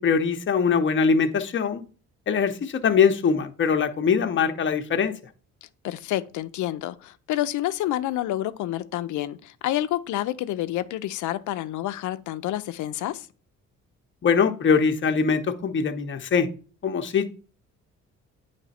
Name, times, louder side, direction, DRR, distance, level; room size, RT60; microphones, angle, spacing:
voice 1, 0.0-1.8 2.3-5.1 14.2-16.5 16.8-17.3, left 6 dB, 40° left, 0.7 m, -22 dB
voice 2, 5.8-13.3, left 13 dB, 75° left, 0.5 m, -28 dB
8.3 x 3.3 x 4.1 m
cardioid pair, 90°, 30 cm